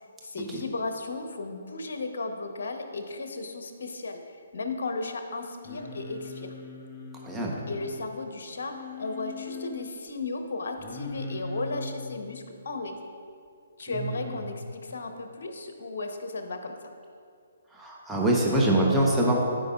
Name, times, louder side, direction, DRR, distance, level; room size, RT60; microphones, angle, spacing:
voice 1, 0.2-4.2 4.5-6.5 7.7-12.9 13.8-16.8, left 3 dB, 65° left, 5 dB, 0.9 m, -35 dB
Singing, 5.6-8.1 8.7-9.9 10.8-12.1 14.1-14.4, left 3 dB, 30° left, 0.9 m, -40 dB
voice 2, 7.2-7.6 13.9-14.1 17.7-19.4, right 1 dB, 5° right, -4 dB, 0.9 m, -24 dB
13.0 x 5.2 x 2.4 m, 2.3 s
figure-of-eight pair, 135°, 0 cm